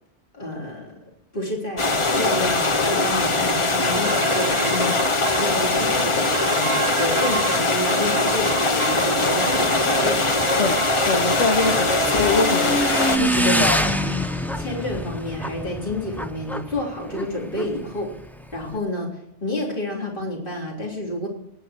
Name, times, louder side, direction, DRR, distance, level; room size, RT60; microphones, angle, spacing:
voice 1, 0.3-1.0 1.3-5.0 5.4-10.6 11.6-11.9 12.2-12.6 13.4-14.2 14.6-18.1 18.5-21.3, left 1 dB, 45° left, -1 dB, 3.6 m, -30 dB
sound 1, 1.8-13.2, left 3 dB, 30° left, 0.9 m, -21 dB
sound 2, 4.0-5.4 5.9-6.0 6.3-7.6 7.8-13.0, right 9 dB, 70° right, 0.9 m, -30 dB
Motorcycle / Engine, 9.6-18.8, equal, ahead, 0.4 m, -27 dB
voice 2, 10.6-12.8 13.2-13.8, left 4 dB, 80° left, 7 dB, 1.6 m, -24 dB
20.0 x 9.1 x 4.4 m, 0.78 s
omnidirectional pair, 1.2 m